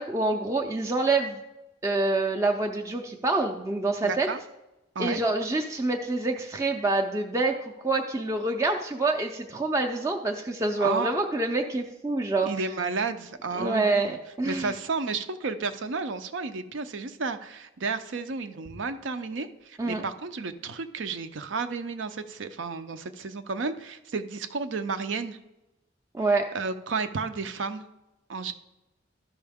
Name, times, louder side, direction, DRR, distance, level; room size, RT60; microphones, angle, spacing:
voice 1, 0.0-1.4 1.8-4.3 5.0-12.5 13.6-14.7 19.8-20.0 26.1-26.5, right 2 dB, 15° right, 1 dB, 0.5 m, -26 dB
voice 2, 4.0-4.4 4.9-5.2 10.8-11.2 12.4-14.2 14.4-25.4 26.5-27.9 28.3-28.5, right 4 dB, 65° right, 10 dB, 0.6 m, -32 dB
13.0 x 5.6 x 3.5 m, 0.98 s
head